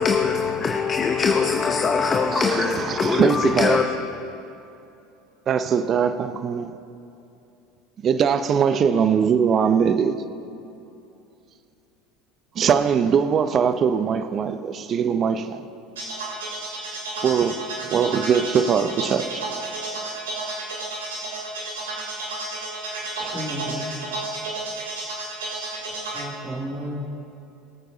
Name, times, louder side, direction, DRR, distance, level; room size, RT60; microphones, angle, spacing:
voice 1, 0.0-3.8, left 5 dB, 30° left, 0.8 m, -22 dB
voice 2, 2.3-3.8 5.5-6.8 8.0-10.2 12.5-15.7 17.2-17.6 17.9-19.4, right 7 dB, 40° right, 0.7 m, -21 dB
sound 1, 16.0-26.2, right 2 dB, 85° right, 3.2 m, -32 dB
voice 3, 23.2-24.2 26.1-27.0, equal, 10° right, 2.7 m, -33 dB
22.5 x 9.2 x 2.8 m
hypercardioid pair, 80°, 0 cm